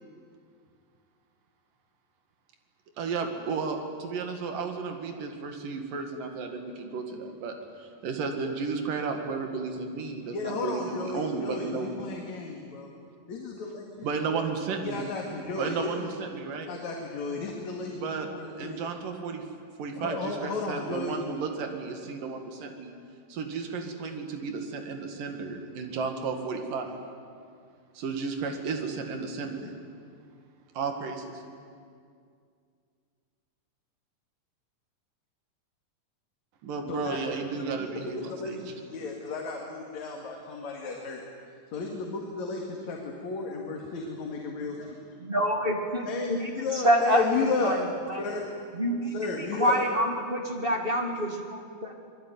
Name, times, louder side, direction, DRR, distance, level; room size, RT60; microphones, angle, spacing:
voice 1, 3.0-11.9 14.0-15.1 15.5-16.7 18.0-18.3 18.6-19.4 19.8-22.9 23.3-26.9 28.0-29.7 30.8-31.3 36.6-38.6, right 4 dB, 75° right, 4 dB, 3.8 m, -33 dB
voice 2, 10.3-12.9 13.3-14.1 14.8-16.1 16.7-18.8 20.0-21.2 36.9-37.4 37.8-37.9 38.3-41.2 41.7-45.0 46.0-47.7 48.1-48.5 49.1-49.8, left 4 dB, 60° left, 0 dB, 3.3 m, -33 dB
voice 3, 45.2-47.2 47.6-47.8 48.1-48.2 48.8-49.1 49.5-51.9, equal, 25° right, 2 dB, 1.4 m, -27 dB
26.0 x 21.0 x 9.5 m, 2.3 s
omnidirectional pair, 3.9 m